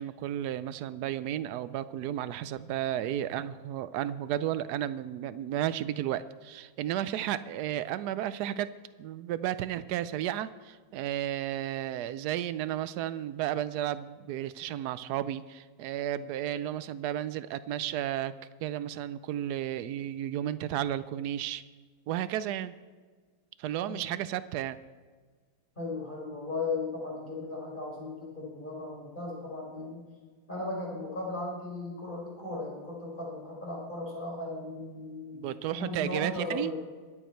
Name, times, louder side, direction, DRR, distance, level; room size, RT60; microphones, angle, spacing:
voice 1, 0.0-8.7 9.0-18.3 18.6-21.6 22.1-22.7 23.6-24.8 35.3-36.7, right 11 dB, 80° right, 14 dB, 0.8 m, -33 dB
voice 2, 25.8-30.0 30.5-36.8, left 2 dB, 20° left, -4 dB, 4.7 m, -37 dB
23.0 x 8.3 x 4.5 m, 1.5 s
omnidirectional pair, 2.3 m